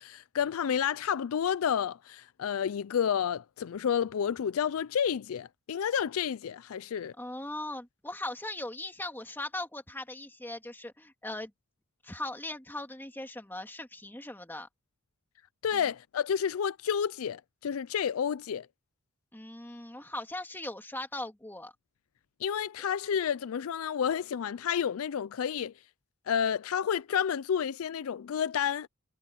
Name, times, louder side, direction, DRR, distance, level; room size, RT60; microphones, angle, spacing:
voice 1, 0.0-7.1 15.6-18.7 22.4-25.7 26.3-28.9, left 8 dB, 75° left, 0.4 m, -30 dB
voice 2, 7.2-11.5 12.0-14.7 15.7-15.8 19.3-21.7, left 1 dB, 10° left, 2.4 m, -39 dB
head